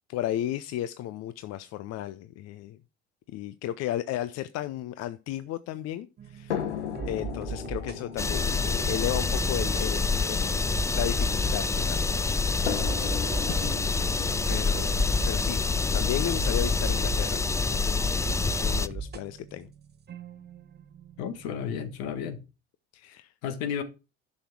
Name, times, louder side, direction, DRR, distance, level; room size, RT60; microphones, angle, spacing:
voice 1, 0.1-2.8 3.3-6.6 7.1-10.6 10.9-12.0 12.9-13.9 14.5-15.7 15.9-17.4 17.7-18.1 18.6-19.7 22.9-23.3, left 13 dB, 50° left, 0.7 m, -34 dB
sound 1, 6.2-22.5, right 6 dB, 30° right, 0.9 m, -40 dB
sound 2, 6.5-11.7 12.7-16.6 17.6-17.7 18.1-18.2, left 8 dB, 80° left, 1.1 m, -38 dB
sound 3, 8.2-18.9, left 4 dB, 10° left, 0.4 m, -27 dB
voice 2, 21.2-22.4 23.4-23.8, left 8 dB, 65° left, 1.6 m, -32 dB
11.0 x 6.3 x 4.7 m
figure-of-eight pair, 60°, 34 cm